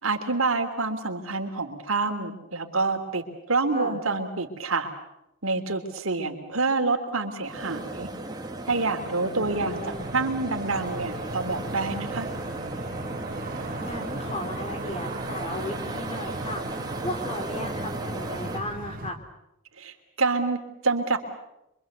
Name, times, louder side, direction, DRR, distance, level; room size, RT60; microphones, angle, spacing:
voice 1, 0.0-4.9 5.4-8.1 8.7-12.3 19.8-21.2, right 3 dB, 80° right, 4 dB, 3.2 m, -27 dB
sound 1, 7.4-18.6, right 2 dB, 20° right, 2.4 m, -35 dB
voice 2, 9.4-10.1 13.8-16.6 17.0-19.2, left 1 dB, 30° left, 6 dB, 3.3 m, -35 dB
sound 2, 9.5-19.1, right 2 dB, 40° right, 3.1 m, -38 dB
27.0 x 24.0 x 8.1 m, 0.89 s
head